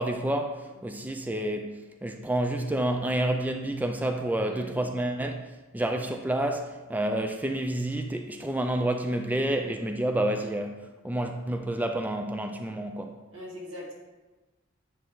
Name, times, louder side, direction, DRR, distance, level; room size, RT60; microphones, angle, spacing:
voice 1, 0.0-5.5 5.7-13.2, right 1 dB, 10° right, 0.3 m, -29 dB
voice 2, 4.4-4.8 13.3-13.9, equal, 80° right, 2.1 m, -41 dB
9.0 x 3.3 x 3.7 m
head